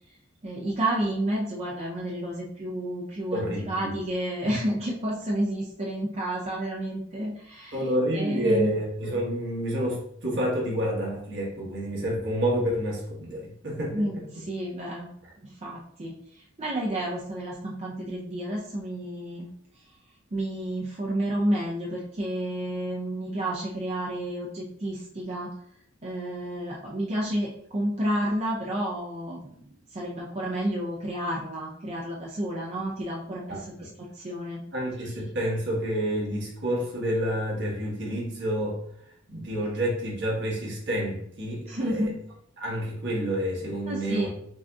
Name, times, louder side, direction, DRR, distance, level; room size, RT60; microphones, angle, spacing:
voice 1, 0.4-7.8 8.1-8.7 13.9-15.1 15.4-19.5 20.3-25.5 26.0-29.4 29.9-34.6 41.6-42.2 43.9-44.3, right 1 dB, 30° right, -4 dB, 0.5 m, -30 dB
voice 2, 3.3-4.0 4.4-4.5 7.7-14.2 33.5-33.9 34.7-38.8 39.3-42.1 42.6-44.3, equal, 60° right, -3 dB, 1.3 m, -29 dB
6.0 x 2.6 x 2.3 m, 0.71 s
head